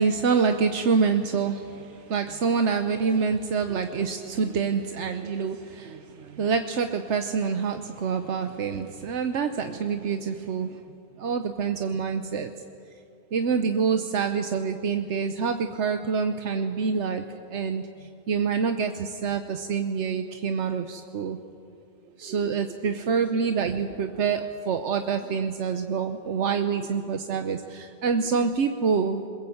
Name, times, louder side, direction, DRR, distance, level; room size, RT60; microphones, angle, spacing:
voice 1, 0.0-10.7 11.2-12.5 13.3-21.4 22.2-29.3, right 5 dB, 85° right, 7 dB, 1.2 m, -26 dB
22.0 x 21.5 x 7.9 m, 2.6 s
omnidirectional pair, 1.2 m